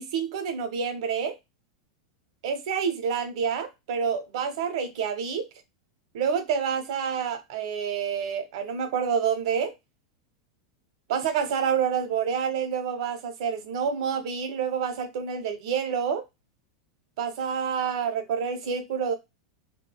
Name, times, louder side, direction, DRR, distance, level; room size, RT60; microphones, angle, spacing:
voice 1, 0.0-1.4 2.4-5.5 6.1-9.7 11.1-16.2 17.2-19.1, right 7 dB, 70° right, 0.7 m, -28 dB
3.7 x 2.1 x 2.2 m
supercardioid pair, 130°, 3 cm